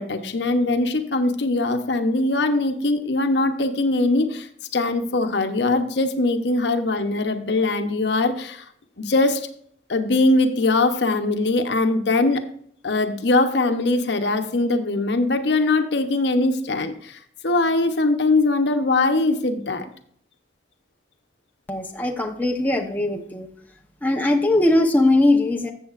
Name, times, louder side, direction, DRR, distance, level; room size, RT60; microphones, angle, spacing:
voice 1, 0.0-4.5 4.7-8.6 9.0-9.5 9.9-12.4 12.8-19.9, left 2 dB, 75° left, 8 dB, 0.8 m, -21 dB
voice 2, 21.7-23.5 24.0-25.7, left 2 dB, 10° left, 1 dB, 0.8 m, -20 dB
14.5 x 7.1 x 2.5 m, 0.64 s
head